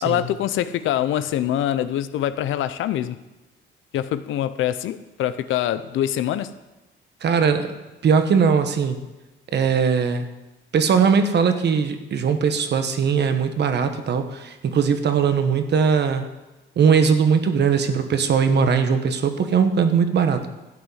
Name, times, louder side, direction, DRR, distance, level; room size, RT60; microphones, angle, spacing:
voice 1, 0.0-3.2 3.9-6.5, left 11 dB, 85° left, 13 dB, 0.7 m, -24 dB
voice 2, 7.2-7.7 8.0-9.0 9.5-10.3 10.7-16.2 16.8-20.5, right 6 dB, 60° right, 8 dB, 1.2 m, -20 dB
12.5 x 8.3 x 5.6 m, 1.1 s
cardioid pair, 90°, 20 cm